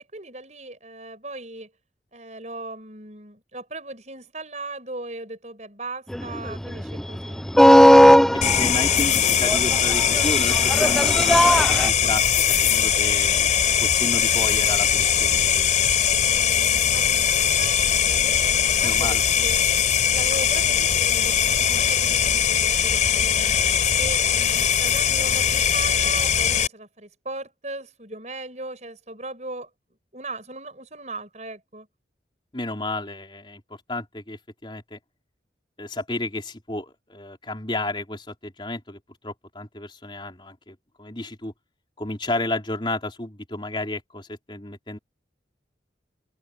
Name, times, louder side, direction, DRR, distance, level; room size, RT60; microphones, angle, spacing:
voice 1, 0.1-1.7 2.1-7.4 16.2-19.6 20.1-23.7 24.0-29.7 30.1-31.9, right 2 dB, 40° right, 7.5 m, -38 dB
sound 1, 6.1-11.9, equal, ahead, 0.4 m, -17 dB
sound 2, 8.4-26.7, left 8 dB, 45° left, 5.2 m, -21 dB
voice 2, 8.5-13.5 13.8-15.8 18.8-19.2 32.5-33.6 33.9-35.0 35.8-39.0 39.2-41.5 42.0-45.0, left 2 dB, 25° left, 4.3 m, -32 dB
head